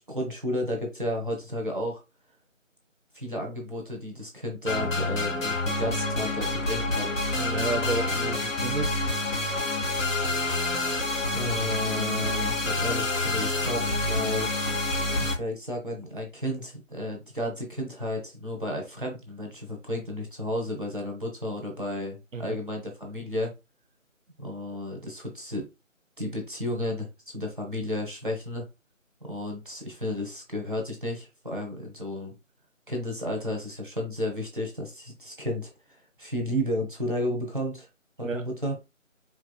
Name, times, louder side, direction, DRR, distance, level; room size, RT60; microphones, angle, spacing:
voice 1, 0.0-2.0 3.1-7.2 11.3-14.5 15.2-23.5 24.4-25.7 26.2-28.7 29.2-32.3 32.9-37.9 38.2-38.8, left 1 dB, 40° right, 1.1 m, -32 dB
sound 1, 4.7-15.3, left 2 dB, 75° left, 2.2 m, -27 dB
voice 2, 7.4-8.9 22.3-22.6 38.2-38.4, right 3 dB, 70° right, 0.9 m, -31 dB
4.7 x 3.3 x 2.2 m
figure-of-eight pair, 180°, 40 cm